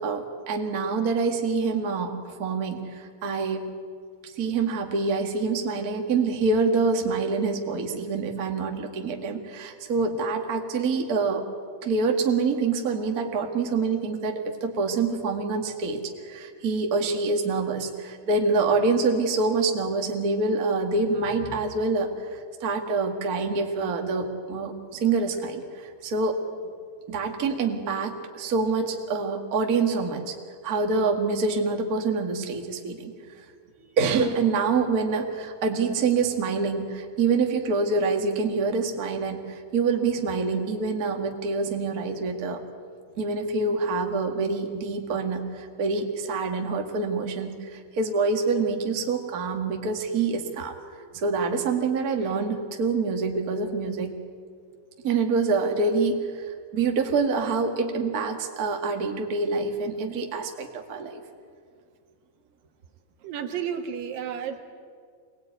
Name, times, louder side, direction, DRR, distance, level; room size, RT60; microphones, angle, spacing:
voice 1, 0.0-3.7 4.4-11.4 11.8-26.4 27.1-30.3 30.6-33.1 34.0-42.6 43.2-50.7 51.1-54.2 55.0-61.2, right 4 dB, 35° right, 2 dB, 1.7 m, -26 dB
voice 2, 63.2-64.6, right 8 dB, 75° right, 4 dB, 3.3 m, -32 dB
24.5 x 19.5 x 9.3 m, 2.1 s
omnidirectional pair, 4.0 m